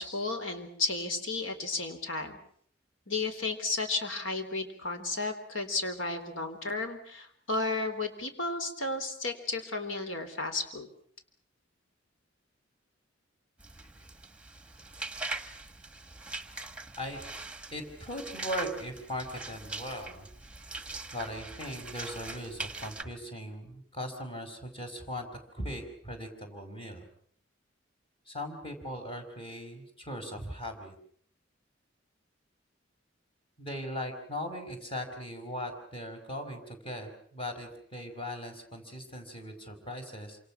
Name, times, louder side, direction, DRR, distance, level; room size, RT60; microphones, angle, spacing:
voice 1, 0.0-2.4 3.1-10.9, left 3 dB, 85° left, 6 dB, 4.0 m, -33 dB
sound 1, 13.6-23.0, right 3 dB, 5° right, 1.5 m, -42 dB
voice 2, 17.7-20.3 21.1-25.3 25.5-27.1 28.3-31.0 33.6-40.4, equal, 30° left, 5 dB, 5.3 m, -39 dB
27.5 x 26.5 x 6.1 m, 0.62 s
head